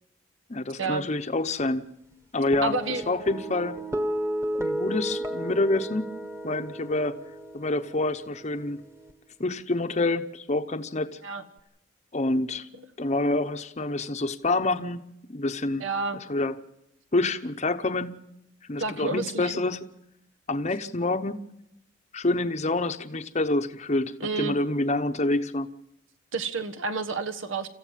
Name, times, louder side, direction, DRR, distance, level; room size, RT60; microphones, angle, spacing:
voice 1, 0.5-1.8 2.3-2.7 3.1-3.8 4.6-6.1 6.4-7.2 7.5-8.8 9.4-11.2 12.1-12.7 13.0-15.9 16.3-16.6 17.1-18.2 18.7-19.8 20.5-21.4 22.1-25.7, left 2 dB, 35° left, 8 dB, 0.9 m, -27 dB
sound 1, 2.5-9.1, right 1 dB, 15° right, 1.5 m, -33 dB
voice 2, 2.6-3.0 11.2-11.4 15.8-16.2 18.8-19.6 24.2-24.6 26.3-27.7, right 3 dB, 80° right, 11 dB, 1.4 m, -30 dB
27.5 x 14.5 x 7.4 m, 0.82 s
head